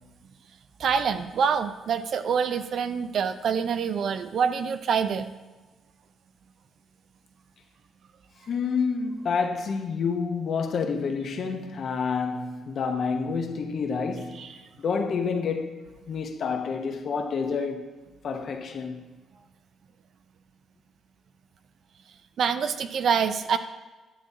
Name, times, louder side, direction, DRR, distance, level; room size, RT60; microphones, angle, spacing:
voice 1, 0.8-5.3 14.4-14.5 22.4-23.6, right 6 dB, 65° right, 0.5 m, -26 dB
voice 2, 8.5-14.4 14.8-15.8 16.1-17.9 18.2-19.0, left 5 dB, 60° left, 0.9 m, -28 dB
10.0 x 7.2 x 2.7 m
cardioid pair, 90°, 0 cm